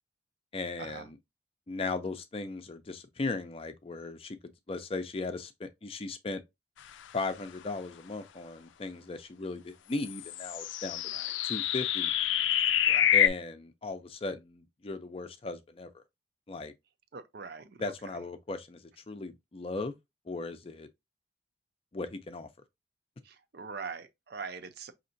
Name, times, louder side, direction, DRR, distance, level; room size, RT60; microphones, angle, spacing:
voice 1, 0.5-1.2 1.7-4.4 4.7-6.4 7.1-11.0 11.4-12.1 13.1-16.0 16.5-16.7 17.8-18.8 19.1-19.9 20.3-20.9 21.9-22.5, left 3 dB, 30° left, 0.5 m, -37 dB
sound 1, 10.1-13.3, left 11 dB, 90° left, 0.4 m, -27 dB
voice 2, 17.1-17.9 23.2-24.9, right 5 dB, 60° right, 0.6 m, -42 dB
5.3 x 2.8 x 2.6 m
head